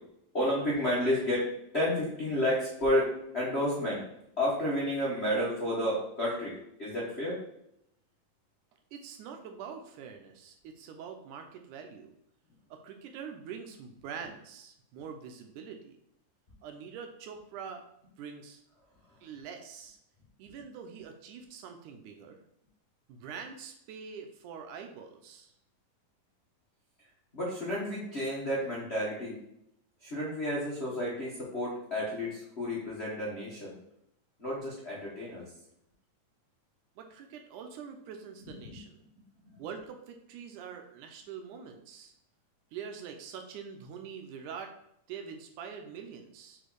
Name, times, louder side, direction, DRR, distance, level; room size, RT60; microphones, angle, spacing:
voice 1, 0.3-4.0 4.4-7.4 27.3-29.4 30.0-33.7 34.4-35.5 38.6-38.8 39.4-39.5, left 1 dB, 60° left, -7 dB, 0.6 m, -31 dB
voice 2, 8.9-12.1 12.7-16.0 16.6-17.9 18.2-18.6 19.2-20.0 20.4-22.4 23.1-25.5 37.0-39.0 39.6-42.1 42.7-44.7 45.1-46.6, right 6 dB, 75° right, 5 dB, 2.0 m, -44 dB
5.0 x 4.4 x 4.6 m, 0.77 s
omnidirectional pair, 3.9 m